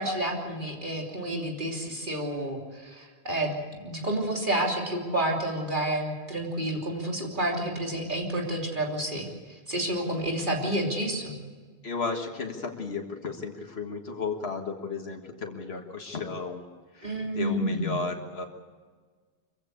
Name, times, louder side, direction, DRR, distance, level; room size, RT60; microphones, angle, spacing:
voice 1, 0.0-11.4 17.0-18.0, right 1 dB, 55° right, 0 dB, 3.3 m, -30 dB
voice 2, 11.8-16.7 16.9-18.4, left 4 dB, 90° left, 3 dB, 1.9 m, -34 dB
24.5 x 16.0 x 8.3 m, 1.5 s
omnidirectional pair, 1.0 m